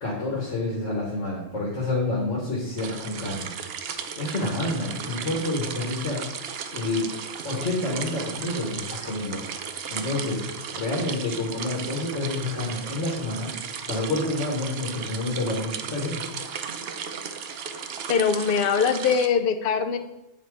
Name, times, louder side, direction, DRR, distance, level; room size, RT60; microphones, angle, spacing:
voice 1, 0.0-3.5 4.2-6.2 6.7-7.1 7.4-10.5 10.7-13.5 13.9-16.2, left 2 dB, 85° left, -3 dB, 1.7 m, -28 dB
sound 1, 2.8-19.3, right 6 dB, 65° right, 0.8 m, -35 dB
voice 2, 18.1-20.0, left 6 dB, 55° left, 7 dB, 0.7 m, -22 dB
8.1 x 4.2 x 4.7 m, 0.91 s
omnidirectional pair, 1.2 m